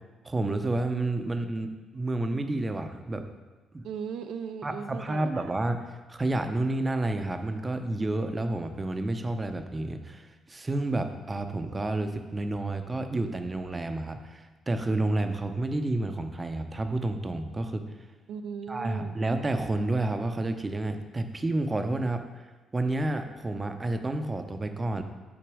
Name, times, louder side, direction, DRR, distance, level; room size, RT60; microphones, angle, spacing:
voice 1, 0.2-3.3 3.7-3.8 4.6-5.8 6.1-17.8 18.7-22.4 22.7-25.0, right 2 dB, 25° right, 7 dB, 0.5 m, -30 dB
voice 2, 3.8-5.5 18.3-19.2, right 6 dB, 80° right, 8 dB, 0.3 m, -37 dB
6.0 x 4.0 x 4.7 m, 1.2 s
cardioid pair, 90°, 0 cm